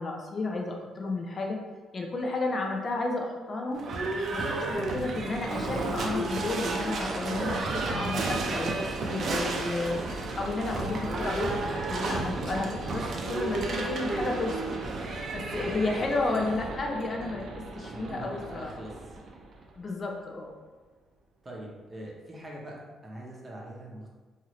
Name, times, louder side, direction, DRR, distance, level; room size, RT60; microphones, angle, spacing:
voice 1, 0.0-1.6 1.9-3.9 4.3-10.0 10.3-14.8 15.3-18.7 19.8-20.5, left 2 dB, 40° left, 1 dB, 0.4 m, -32 dB
Livestock farm animals working animals / Bell, 3.7-19.6, right 3 dB, 60° right, 0.4 m, -32 dB
voice 2, 17.9-19.0 21.4-24.1, right 1 dB, 30° right, -3 dB, 0.7 m, -42 dB
2.8 x 2.5 x 3.0 m, 1.3 s
cardioid pair, 95°, 0 cm